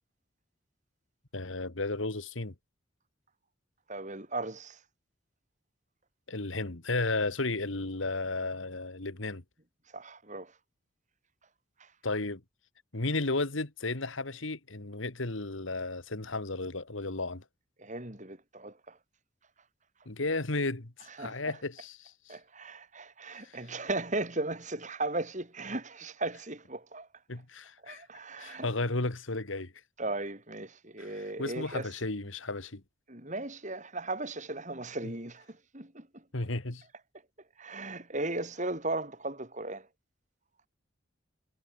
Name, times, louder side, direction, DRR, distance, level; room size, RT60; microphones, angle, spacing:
voice 1, 1.3-2.5 6.3-9.4 12.0-12.4 12.9-17.4 20.1-22.4 23.4-23.6 27.3-28.0 28.4-29.7 31.0-31.1 31.4-32.8 35.0-35.1 36.3-36.8, left 2 dB, 80° left, 2.0 m, -33 dB
voice 2, 3.9-4.8 9.9-10.5 11.8-11.9 17.8-19.0 21.2-21.6 22.3-27.1 27.8-28.7 30.0-31.9 33.1-36.2 37.6-39.9, right 2 dB, 40° right, 4.7 m, -37 dB
head